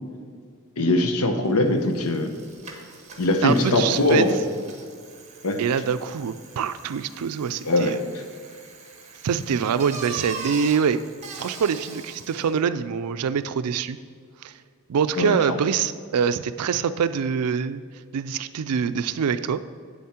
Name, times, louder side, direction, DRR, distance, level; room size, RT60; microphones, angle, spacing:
voice 1, 0.8-2.3 3.2-4.4 5.4-5.6 7.6-7.9 15.2-15.4, left 2 dB, 75° left, 6 dB, 0.8 m, -21 dB
Bicycle, 1.4-1.5 1.8-12.6, right 4 dB, 30° right, 1.3 m, -42 dB
voice 2, 3.4-4.3 5.6-8.0 9.2-11.0 11.4-14.0 14.4-14.5 14.9-17.8 18.1-19.6, right 7 dB, 85° right, 13 dB, 0.4 m, -24 dB
8.6 x 7.3 x 4.3 m, 2.1 s
head